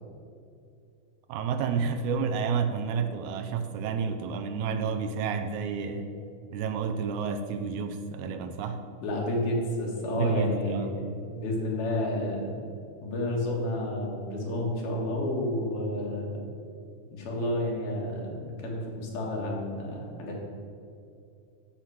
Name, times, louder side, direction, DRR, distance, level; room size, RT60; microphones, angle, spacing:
voice 1, 1.3-6.1 6.5-8.8 10.2-10.9, right 6 dB, 85° right, 7 dB, 2.0 m, -30 dB
voice 2, 9.0-11.1 11.3-12.5 13.0-16.4 17.1-20.4, left 1 dB, 90° left, -2 dB, 3.4 m, -30 dB
13.5 x 5.8 x 4.9 m, 2.6 s
omnidirectional pair, 3.5 m